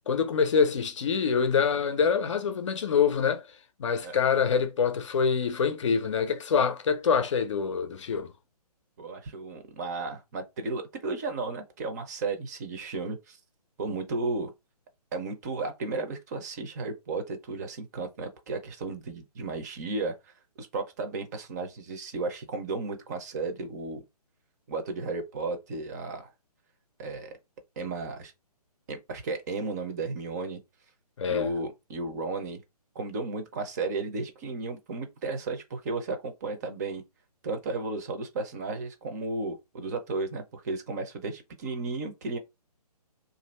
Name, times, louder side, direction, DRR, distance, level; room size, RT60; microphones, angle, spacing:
voice 1, 0.1-3.4 3.8-8.3 31.2-31.5, left 6 dB, 50° left, 0.6 m, -25 dB
voice 2, 9.0-13.4 13.8-14.5 15.1-20.2 20.6-24.0 24.7-26.3 27.0-27.3 27.8-28.3 28.9-30.6 31.3-32.6 32.9-37.0 37.4-42.4, right 3 dB, 25° right, 0.6 m, -34 dB
2.7 x 2.6 x 4.2 m
hypercardioid pair, 155°, 20 cm